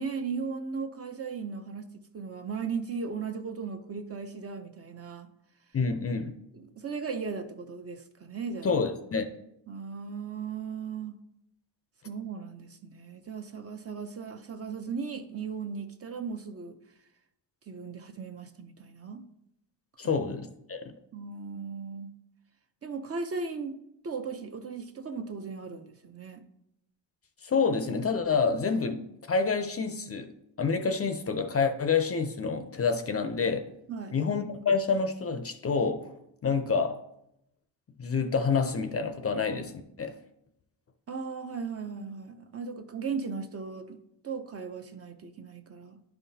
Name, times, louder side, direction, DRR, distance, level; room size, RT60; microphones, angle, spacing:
voice 1, 0.0-5.3 6.5-8.8 9.7-11.2 12.0-16.8 17.7-19.3 20.0-20.2 21.1-22.2 22.8-23.8 24.0-26.5 33.9-34.2 41.1-46.0, right 5 dB, 30° right, 0.6 m, -37 dB
voice 2, 5.7-6.3 8.6-9.3 20.0-20.9 27.4-30.3 30.6-33.7 34.1-36.1 36.4-37.0 38.0-40.1, left 5 dB, 30° left, 0.5 m, -28 dB
10.5 x 5.7 x 2.7 m
cardioid pair, 120°, 46 cm